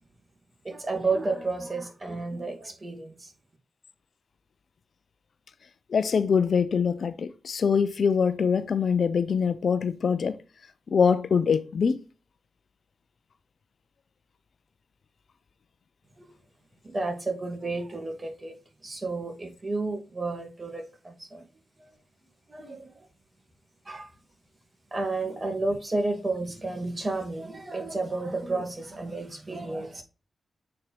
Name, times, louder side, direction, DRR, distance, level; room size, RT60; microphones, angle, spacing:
voice 1, 0.6-3.3 16.2-16.4 16.8-18.5 18.8-21.4 21.8-22.0 22.5-23.0 23.9-24.1 24.9-30.0, right 3 dB, 35° right, 2.4 m, -31 dB
voice 2, 5.9-10.4 10.9-12.0, left 6 dB, 70° left, 0.6 m, -24 dB
7.4 x 4.5 x 3.2 m
supercardioid pair, 40°, 0 cm